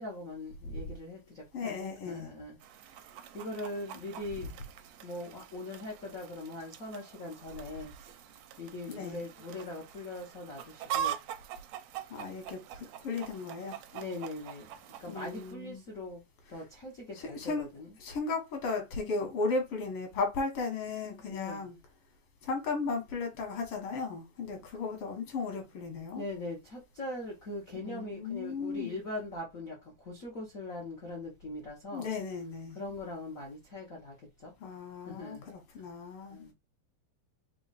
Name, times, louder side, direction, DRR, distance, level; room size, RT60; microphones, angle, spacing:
voice 1, 0.0-1.8 2.1-2.6 2.8-3.1 3.3-4.6 5.0-7.9 8.6-11.2 13.9-14.7 15.0-16.2 16.5-17.9 21.3-21.7 24.5-24.6 26.1-32.1 32.7-34.5 35.1-35.5 36.3-36.5, left 2 dB, 70° left, 0.7 m, -41 dB
voice 2, 1.5-2.3 8.9-9.2 12.1-13.8 15.1-15.8 17.2-17.7 18.0-21.8 22.4-26.2 27.8-29.0 31.9-32.8 34.6-36.5, left 4 dB, 55° left, 1.9 m, -35 dB
Chicken rooster, 2.6-15.5, right 10 dB, 80° right, 1.6 m, -43 dB
4.6 x 2.4 x 4.0 m
omnidirectional pair, 3.5 m